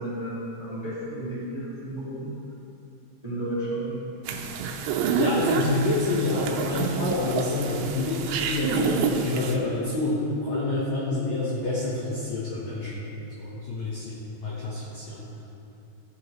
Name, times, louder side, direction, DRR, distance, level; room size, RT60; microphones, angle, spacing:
voice 1, 0.0-2.3 3.2-4.0 6.4-6.6, right 1 dB, 20° right, -9 dB, 0.9 m, -32 dB
sound 1, 4.3-9.6, right 6 dB, 90° right, 3.2 m, -28 dB
voice 2, 5.0-15.2, left 2 dB, 85° left, -6 dB, 1.5 m, -28 dB
15.5 x 9.4 x 3.2 m, 2.9 s
omnidirectional pair, 5.4 m